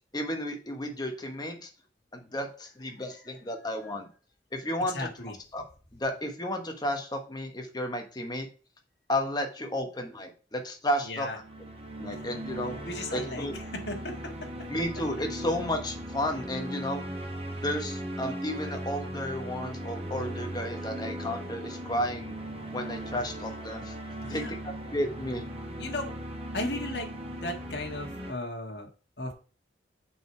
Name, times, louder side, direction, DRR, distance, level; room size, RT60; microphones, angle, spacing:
voice 1, 0.1-1.7 2.1-4.1 4.5-5.1 5.5-5.6 5.9-8.5 9.1-11.3 12.0-12.8 13.1-13.5 14.7-17.0 17.6-22.3 22.7-23.9 24.3-25.5, left 1 dB, 25° left, 4 dB, 1.2 m, -32 dB
voice 2, 3.8-4.1 4.9-5.3 11.0-11.4 12.8-14.3 24.2-24.5 25.8-26.1 26.5-28.9 29.2-29.3, left 2 dB, 65° left, 2 dB, 1.5 m, -36 dB
sound 1, 11.3-28.3, right 1 dB, 35° right, 1.2 m, -38 dB
6.5 x 4.7 x 4.5 m, 0.37 s
head